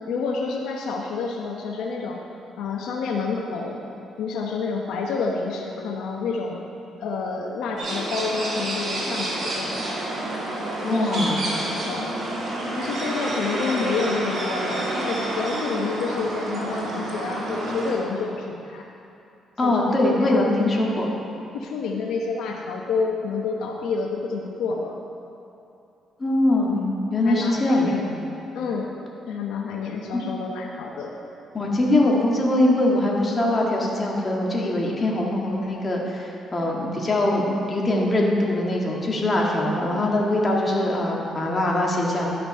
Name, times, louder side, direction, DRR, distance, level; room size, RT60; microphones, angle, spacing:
voice 1, 0.1-2.2 2.6-3.8 4.2-6.6 7.0-9.7 10.9-12.0 12.7-18.8 19.6-20.3 21.5-24.9 27.2-28.0 28.5-28.9 29.3-31.1, left 4 dB, 85° left, 0 dB, 0.9 m, -29 dB
sound 1, 7.8-17.9, right 1 dB, 55° right, 2.3 m, -29 dB
voice 2, 10.8-11.4 19.6-21.1 26.2-28.0 30.1-30.2 31.5-42.4, left 1 dB, 30° left, -2 dB, 1.9 m, -22 dB
11.5 x 5.9 x 5.4 m, 2.7 s
cardioid pair, 90°, 0 cm